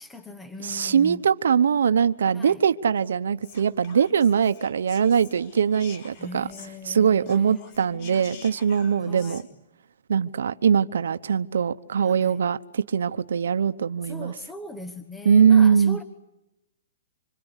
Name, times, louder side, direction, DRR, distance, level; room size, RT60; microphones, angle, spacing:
voice 1, 0.0-1.2 2.3-2.6 6.2-8.5 9.0-9.5 12.0-12.4 14.0-16.0, left 2 dB, 5° left, 1.2 m, -40 dB
voice 2, 0.6-6.5 6.9-9.4 10.1-14.3 15.2-16.0, right 7 dB, 80° right, 1.0 m, -21 dB
Whispering, 3.4-6.9 7.2-9.4, left 5 dB, 35° left, 4.6 m, -48 dB
26.5 x 26.5 x 8.2 m
hypercardioid pair, 170°, 0 cm